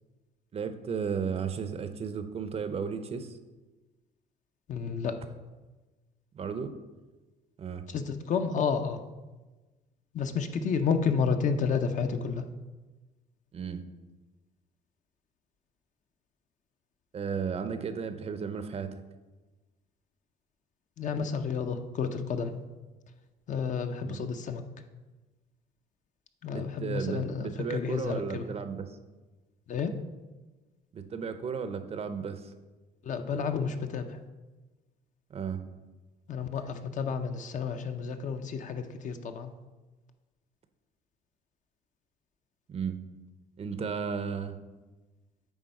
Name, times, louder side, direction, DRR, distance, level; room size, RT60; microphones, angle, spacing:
voice 1, 0.5-3.3 6.3-6.7 7.6-7.9 13.5-13.8 17.1-19.0 24.0-24.2 26.5-29.0 30.9-32.5 35.3-35.6 42.7-43.0 43.6-44.6, right 6 dB, 35° right, 10 dB, 0.6 m, -34 dB
voice 2, 4.7-5.2 7.9-9.0 10.1-12.4 21.0-22.6 23.5-24.6 26.4-28.4 29.7-29.9 33.0-34.2 36.3-39.5, left 6 dB, 50° left, 7 dB, 0.6 m, -31 dB
8.6 x 3.5 x 5.2 m, 1.2 s
cardioid pair, 110°, 17 cm